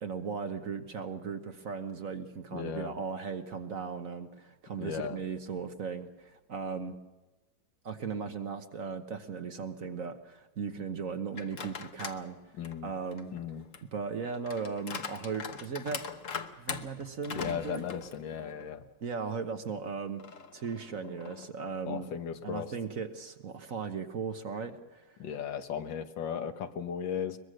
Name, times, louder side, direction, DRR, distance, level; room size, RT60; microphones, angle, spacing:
voice 1, 0.0-7.0 7.8-12.4 12.8-13.3 13.9-16.0 16.6-17.9 19.0-20.2 20.5-22.1 22.4-25.2, right 5 dB, 50° right, 7 dB, 1.4 m, -37 dB
voice 2, 2.5-3.0 4.8-5.2 12.6-12.9 13.3-13.6 17.4-18.9 21.9-22.7 25.2-27.4, left 7 dB, 75° left, 8 dB, 1.9 m, -36 dB
sound 1, 11.3-12.2 12.6-18.7 19.1-19.2 20.2-21.7, left 6 dB, 50° left, 1.3 m, -42 dB
22.5 x 22.0 x 6.5 m, 1.1 s
omnidirectional pair, 2.0 m